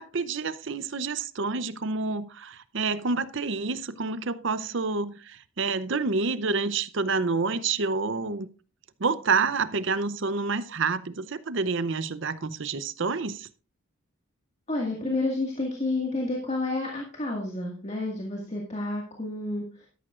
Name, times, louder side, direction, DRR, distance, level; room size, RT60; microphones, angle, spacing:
voice 1, 0.0-8.5 9.0-13.5, right 4 dB, 55° right, 0.7 m, -28 dB
voice 2, 14.7-19.9, left 2 dB, 30° left, 1.9 m, -30 dB
12.5 x 11.5 x 2.5 m
head